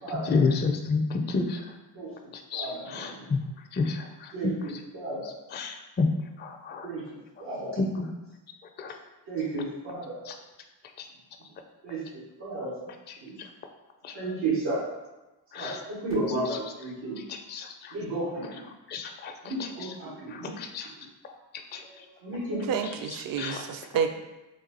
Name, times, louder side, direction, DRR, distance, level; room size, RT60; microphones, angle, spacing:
voice 1, 0.3-1.0 1.3-1.6 2.5-2.7 2.9-3.4 3.7-4.0 4.4-4.5 5.5-6.1 6.4-6.9 7.8-7.9 8.8-8.9 15.5-15.8 17.5-17.7 18.9-19.3 20.6-20.9 21.7-21.8 23.4-23.6, left 4 dB, 25° left, 4 dB, 0.4 m, -28 dB
voice 2, 2.5-3.2 4.3-5.3 6.8-7.0 7.4-7.7 9.3-10.2 11.8-12.7 13.2-13.3 14.1-14.8 15.5-17.2 17.9-18.6 19.4-20.5 21.8-22.6, right 2 dB, 85° right, -12 dB, 1.3 m, -33 dB
voice 3, 22.6-24.1, right 7 dB, 45° right, 6 dB, 0.5 m, -29 dB
3.0 x 2.3 x 4.0 m, 1.0 s
supercardioid pair, 45°, 49 cm